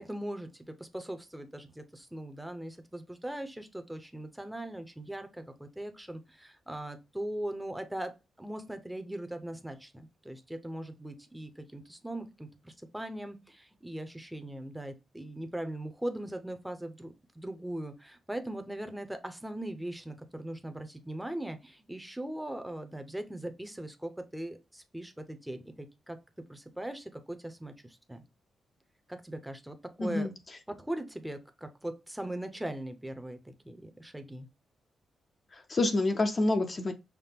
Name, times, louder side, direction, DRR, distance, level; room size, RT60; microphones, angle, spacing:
voice 1, 0.0-26.2 26.5-28.2 29.1-30.3 30.7-34.5, right 1 dB, 5° right, 0.7 m, -40 dB
voice 2, 30.0-30.3 35.5-36.9, left 2 dB, 35° left, 0.6 m, -28 dB
5.8 x 2.1 x 3.5 m
cardioid pair, 125°, 0 cm